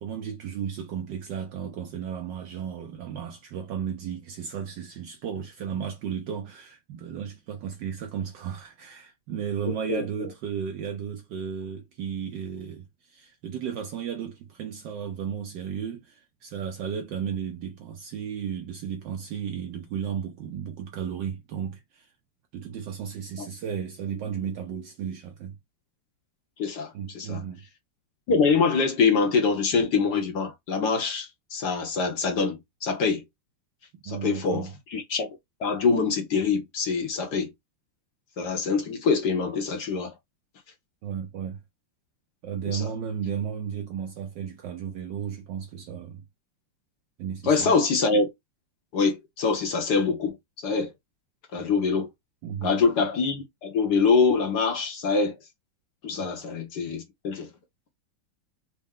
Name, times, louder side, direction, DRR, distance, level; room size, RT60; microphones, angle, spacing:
voice 1, 0.0-22.1 22.5-25.6 26.9-27.6 34.1-34.7 41.0-41.6 42.4-46.2 47.2-47.7 52.4-52.8 56.1-56.3, right 8 dB, 75° right, 1.1 m, -34 dB
voice 2, 9.9-10.3 23.4-23.5 26.6-27.4 28.3-33.2 34.0-35.3 35.6-37.5 38.4-40.1 42.7-42.9 47.4-48.3 48.9-50.9 51.5-52.1 52.6-55.4 56.0-57.5, left 5 dB, 60° left, 1.2 m, -25 dB
4.3 x 2.0 x 3.5 m
omnidirectional pair, 2.4 m